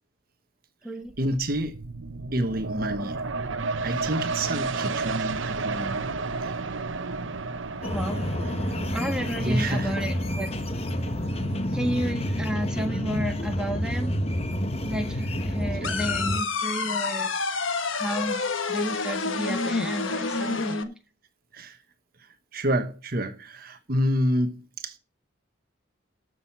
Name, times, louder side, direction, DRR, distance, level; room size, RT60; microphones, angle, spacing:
sound 1, 1.1-14.4 14.8-14.9, right 3 dB, 80° right, 0.9 m, -33 dB
voice 1, 1.2-1.8 2.3-3.2 3.8-6.1 6.4-6.5 8.7-8.9 9.2-9.9 11.4-11.8 15.8-16.0 17.9-18.0 21.5-21.8 22.2-25.0, right 1 dB, 50° right, 1.2 m, -29 dB
sound 2, 7.8-16.4, equal, 30° left, 0.9 m, -29 dB
voice 2, 7.9-10.5 11.7-14.2 14.8-18.4 18.7-20.9, equal, 5° right, 1.5 m, -32 dB
sound 3, 15.8-20.8, left 4 dB, 90° left, 1.3 m, -28 dB
13.0 x 6.4 x 5.6 m
head